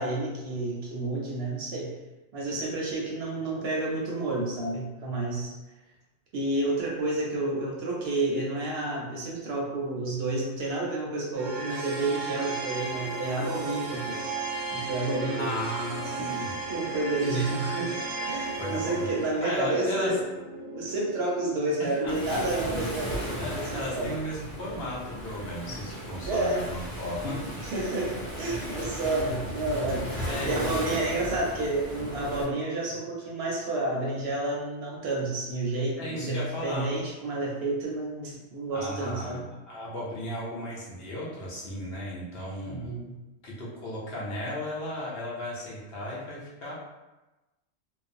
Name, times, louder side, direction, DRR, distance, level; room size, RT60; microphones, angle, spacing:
voice 1, 0.0-1.9 2.3-5.6 6.3-14.4 14.7-15.5 16.0-20.2 20.8-24.1 26.2-26.6 27.3-39.4 42.7-43.2, right 2 dB, 65° right, -3 dB, 0.8 m, -30 dB
sound 1, 11.4-22.4, right 3 dB, 90° right, 1.0 m, -35 dB
voice 2, 15.3-16.6 18.6-19.1 19.4-20.1 21.8-22.1 23.4-27.6 30.3-31.1 36.0-36.9 38.7-39.4 39.7-43.0 43.4-46.7, left 1 dB, 60° left, -6 dB, 0.8 m, -35 dB
Waves surf, 22.1-32.4, equal, 25° left, 1.1 m, -36 dB
2.4 x 2.0 x 2.5 m, 1.1 s
omnidirectional pair, 1.2 m